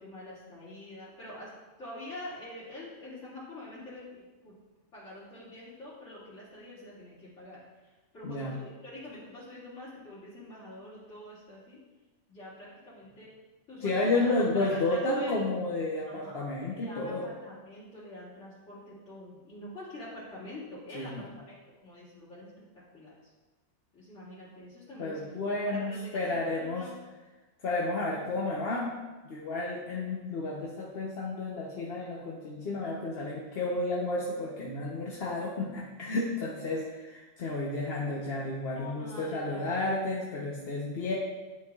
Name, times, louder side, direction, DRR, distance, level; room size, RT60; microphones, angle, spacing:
voice 1, 0.0-1.5 1.8-4.0 4.4-4.5 4.9-7.6 8.1-11.8 12.3-13.3 13.7-15.4 16.1-21.6 21.8-22.5 22.9-23.1 23.9-25.2 25.7-26.9 38.7-39.7, left 1 dB, 90° left, -13 dB, 2.6 m, -45 dB
voice 2, 8.2-8.6 13.8-17.2 20.9-21.3 25.0-26.9 27.6-28.9 29.2-41.1, left 2 dB, 55° left, -4 dB, 1.0 m, -31 dB
10.5 x 4.6 x 2.3 m, 1.2 s
omnidirectional pair, 1.3 m